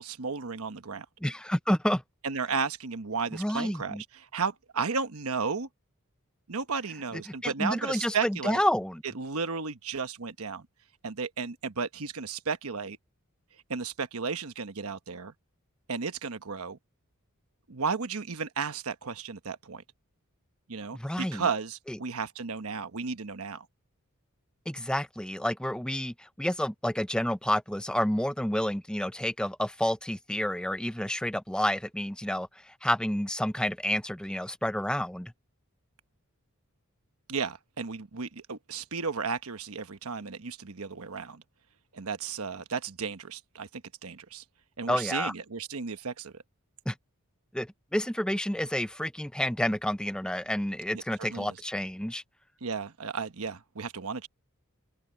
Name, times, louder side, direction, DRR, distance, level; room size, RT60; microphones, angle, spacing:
voice 1, 0.0-1.0 2.2-5.7 6.5-8.6 9.1-10.7 11.0-13.0 13.7-15.3 15.9-16.8 17.7-19.8 20.7-23.7 37.3-41.4 41.9-44.4 44.8-46.3 51.2-51.6 52.6-54.3, right 5 dB, 75° right, 1.1 m, -34 dB
voice 2, 1.2-2.0 3.3-4.0 7.4-9.0 20.9-21.5 21.9-22.0 24.7-35.3 44.9-45.3 46.9-47.0 47.5-52.2, left 1 dB, 5° left, 0.7 m, -29 dB
open air
head